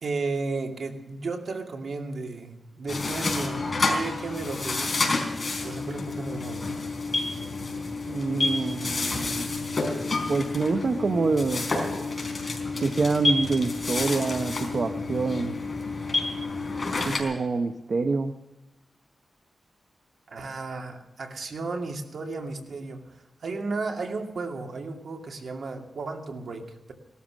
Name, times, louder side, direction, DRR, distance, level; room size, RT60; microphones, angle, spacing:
voice 1, 0.0-5.2 5.6-6.9 20.3-26.9, right 3 dB, 70° right, 3 dB, 2.4 m, -34 dB
sound 1, 2.9-17.2, left 3 dB, 35° left, 4.2 m, -29 dB
voice 2, 8.1-9.6 10.3-11.7 12.8-15.6 17.1-18.3, right 4 dB, 55° right, 8 dB, 0.9 m, -26 dB
18.0 x 13.0 x 6.3 m, 1.0 s
wide cardioid pair, 100°, 0 cm